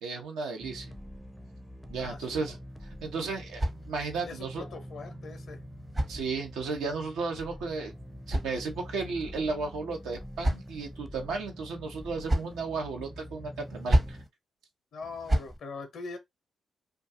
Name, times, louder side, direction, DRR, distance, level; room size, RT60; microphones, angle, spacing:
voice 1, 0.0-0.9 1.9-2.6 2.8-4.6 6.1-7.9 8.3-14.2, right 4 dB, 80° right, 0.7 m, -34 dB
sound 1, 0.6-14.2, equal, 5° right, 0.5 m, -45 dB
voice 2, 2.0-2.5 4.2-5.6 14.9-16.2, left 4 dB, 70° left, 0.5 m, -42 dB
sound 2, 2.7-4.3 5.3-6.8 7.8-9.1 9.9-11.0 11.9-12.6 13.6-14.3 15.0-15.6, right 1 dB, 30° right, 0.8 m, -32 dB
2.4 x 2.2 x 2.7 m
hypercardioid pair, 40°, 0 cm